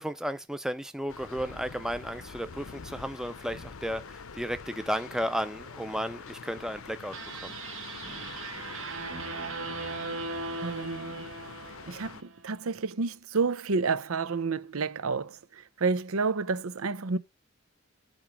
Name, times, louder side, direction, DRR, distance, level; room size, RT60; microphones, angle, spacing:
voice 1, 0.0-7.2 7.4-7.5, equal, 5° right, 0.5 m, -33 dB
sound 1, 1.1-12.2, left 5 dB, 80° left, 0.7 m, -45 dB
sound 2, 7.1-12.4, right 3 dB, 70° right, 1.6 m, -38 dB
voice 2, 10.6-11.3 11.9-17.2, right 4 dB, 90° right, 0.7 m, -30 dB
8.9 x 3.1 x 6.0 m
head